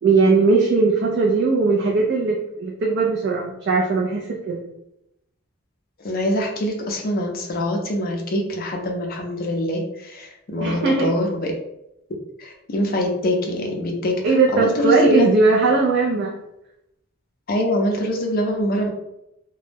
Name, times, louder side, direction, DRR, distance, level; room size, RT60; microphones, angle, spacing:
voice 1, 0.0-4.6 10.6-11.1 14.2-16.4, right 3 dB, 50° right, -1 dB, 0.3 m, -19 dB
voice 2, 6.0-11.5 12.4-14.1 14.5-15.2 17.5-18.9, left 1 dB, 45° left, 1 dB, 0.5 m, -24 dB
2.2 x 2.0 x 3.2 m, 0.83 s
head